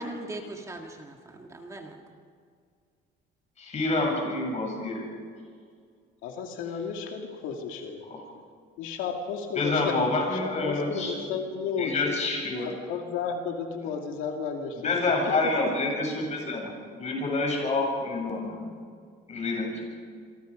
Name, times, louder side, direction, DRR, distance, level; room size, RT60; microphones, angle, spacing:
voice 1, 0.0-2.0 16.6-16.7, right 1 dB, 15° right, 2 dB, 1.8 m, -39 dB
voice 2, 3.6-5.0 8.1-8.2 9.6-11.1 11.8-12.7 14.8-16.7 17.0-18.7 19.3-19.8, left 3 dB, 35° left, 0 dB, 7.7 m, -27 dB
voice 3, 6.2-8.1 8.8-10.0 10.3-12.2 12.6-15.5, left 6 dB, 85° left, 2 dB, 2.5 m, -33 dB
27.0 x 24.0 x 5.2 m, 2.1 s
cardioid pair, 140°, 20 cm